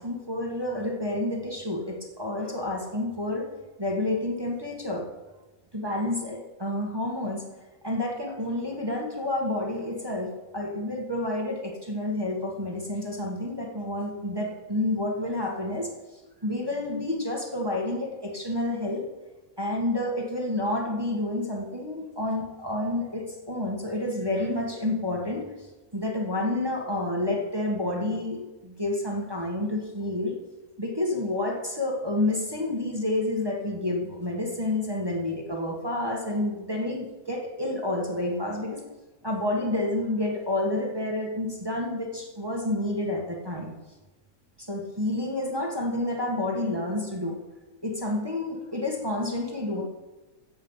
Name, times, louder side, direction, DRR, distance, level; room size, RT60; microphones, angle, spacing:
voice 1, 0.0-3.5 3.8-5.1 5.7-7.4 7.8-15.9 16.4-19.0 19.6-25.7 25.9-30.4 30.8-38.8 39.2-43.7 44.6-47.4 47.8-49.8, left 1 dB, 15° right, -2 dB, 1.8 m, -29 dB
15.0 x 7.7 x 5.7 m, 1.2 s
omnidirectional pair, 1.6 m